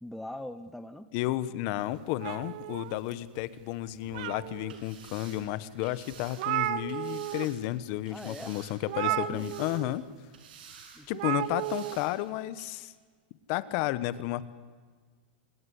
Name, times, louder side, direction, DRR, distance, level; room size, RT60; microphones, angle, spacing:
voice 1, 0.0-1.1 8.1-8.6 9.0-9.5 10.9-11.4, left 1 dB, ahead, 10 dB, 0.7 m, -42 dB
voice 2, 1.1-10.0 11.1-12.9 13.5-14.5, left 15 dB, 40° left, 16 dB, 1.1 m, -32 dB
sound 1, 2.2-3.4 3.9-4.8 5.4-5.5 5.8-5.9 6.1-7.5 7.8-8.0 8.9-9.9 11.1-12.0, right 15 dB, 45° right, 0.9 m, -33 dB
sound 2, 4.6-7.6 8.0-8.9 9.2-10.0 10.3-11.0 11.4-12.1 12.6-12.7, right 6 dB, 70° right, 7.0 m, -51 dB
26.5 x 19.0 x 9.9 m, 1.5 s
supercardioid pair, 165°, 5 cm